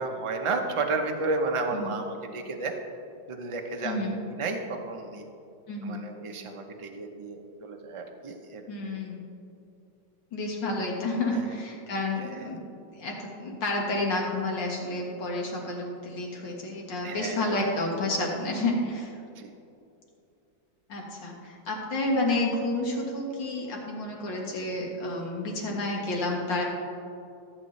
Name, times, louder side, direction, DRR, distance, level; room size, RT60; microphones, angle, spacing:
voice 1, 0.0-2.7 3.3-5.3 5.8-8.7 11.3-11.5 12.1-12.5 17.0-17.5 19.4-19.5, right 3 dB, 45° right, 3 dB, 0.4 m, -32 dB
voice 2, 3.8-4.2 5.7-6.0 8.7-9.2 10.3-12.6 13.0-19.2 20.9-26.6, left 2 dB, 80° left, -1 dB, 2.3 m, -30 dB
14.0 x 8.5 x 3.2 m, 2.6 s
omnidirectional pair, 1.9 m